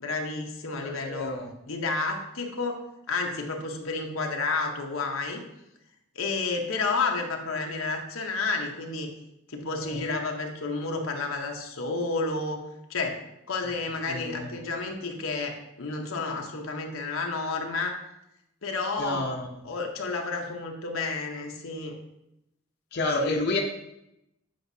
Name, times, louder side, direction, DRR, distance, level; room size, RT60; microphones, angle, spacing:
voice 1, 0.0-1.3 1.7-5.4 6.1-9.1 9.5-12.6 12.9-13.2 13.5-17.9 18.6-19.4 19.6-22.0 23.1-23.4, left 3 dB, 90° left, 2 dB, 0.9 m, -31 dB
voice 2, 0.8-1.5 14.1-14.5 19.0-19.5 22.9-23.6, left 2 dB, 55° left, 1 dB, 0.6 m, -29 dB
7.7 x 5.1 x 2.7 m, 0.85 s
head